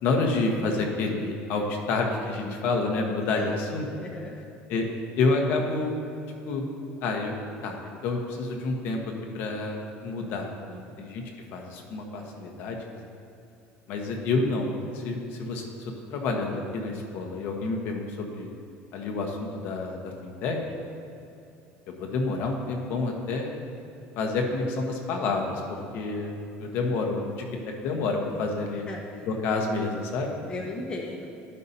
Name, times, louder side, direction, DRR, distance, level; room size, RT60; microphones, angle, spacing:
voice 1, 0.0-3.9 4.7-4.9 5.2-5.9 6.5-6.6 7.0-7.3 7.6-10.5 11.0-11.2 11.5-12.8 13.9-14.7 14.9-18.5 18.9-20.6 21.9-23.5 24.2-26.3 26.6-27.5 27.8-28.8 29.3-30.3, left 3 dB, 60° left, 2 dB, 1.1 m, -28 dB
voice 2, 4.0-4.3 10.7-11.0 25.8-25.9 28.9-29.3 30.5-31.3, left 2 dB, 20° left, -1 dB, 0.7 m, -38 dB
12.5 x 5.5 x 2.7 m, 2.7 s
cardioid pair, 145°, 4 cm